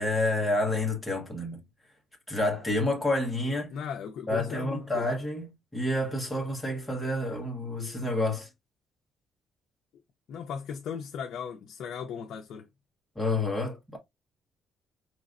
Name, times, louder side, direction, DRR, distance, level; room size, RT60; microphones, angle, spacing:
voice 1, 0.0-1.6 2.3-3.7 4.3-8.5 13.2-14.0, left 2 dB, 5° left, 1.2 m, -29 dB
voice 2, 3.7-5.1 10.3-12.7, left 7 dB, 60° left, 0.5 m, -37 dB
4.8 x 3.0 x 2.4 m
cardioid pair, 165°, 0 cm